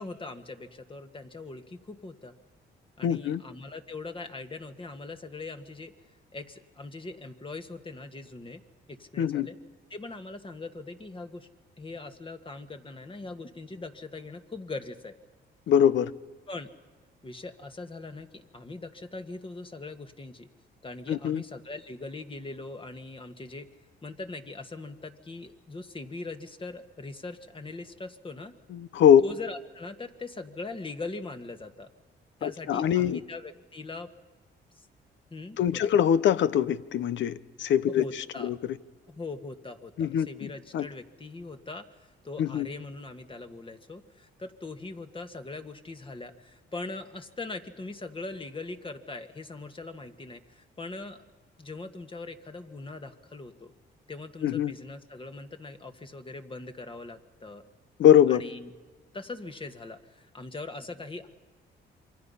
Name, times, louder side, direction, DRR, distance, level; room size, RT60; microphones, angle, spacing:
voice 1, 0.0-2.3 3.0-5.9 6.3-8.6 8.9-9.6 9.9-11.5 11.8-15.2 16.5-16.7 17.2-20.5 20.8-23.7 24.0-28.5 29.2-31.9 32.4-34.1 34.8-34.9 35.3-35.9 37.9-38.5 39.1-51.2 51.6-53.7 54.1-57.6 58.3-58.7 59.1-61.3, left 3 dB, 25° left, 1.7 m, -41 dB
voice 2, 3.0-3.4 9.2-9.5 15.7-16.1 21.1-21.4 28.7-29.2 32.4-33.2 35.6-38.0 38.4-38.6 40.0-40.9 42.4-42.7 54.4-54.7 58.0-58.4, left 9 dB, 70° left, 0.8 m, -22 dB
27.5 x 24.0 x 5.6 m
cardioid pair, 90°, 20 cm